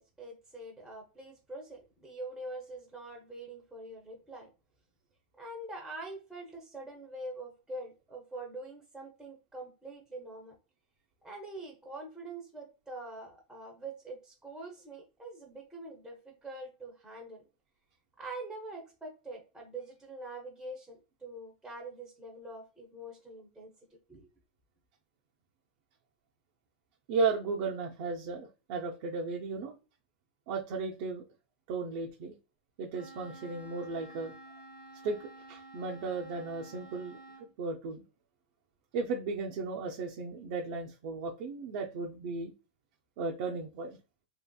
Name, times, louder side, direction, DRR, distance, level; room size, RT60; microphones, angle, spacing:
voice 1, 0.0-4.5 5.4-10.6 11.2-17.4 18.2-23.7 24.1-24.3, right 2 dB, 5° right, 0 dB, 0.6 m, -44 dB
voice 2, 27.1-29.8 30.5-31.2 31.7-32.3 32.8-34.3 35.0-38.0 38.9-42.5 43.2-44.0, right 4 dB, 55° right, -1 dB, 0.4 m, -35 dB
Wind instrument woodwind instrument, 32.9-37.5, right 2 dB, 85° left, 1.0 m, -51 dB
2.8 x 2.7 x 2.2 m, 0.31 s
supercardioid pair, 150°, 4 cm